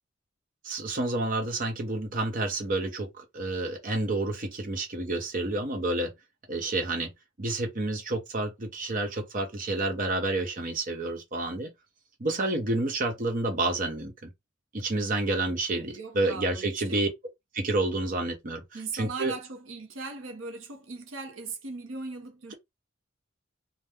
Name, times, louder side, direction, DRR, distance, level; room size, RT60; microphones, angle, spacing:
voice 1, 0.6-6.1 6.5-7.1 7.4-11.7 12.2-14.3 14.7-17.1 17.5-19.3, right 2 dB, 45° right, 0.8 m, -29 dB
voice 2, 15.9-17.1 18.7-22.5, right 4 dB, 80° right, 0.8 m, -39 dB
2.8 x 2.2 x 3.4 m
head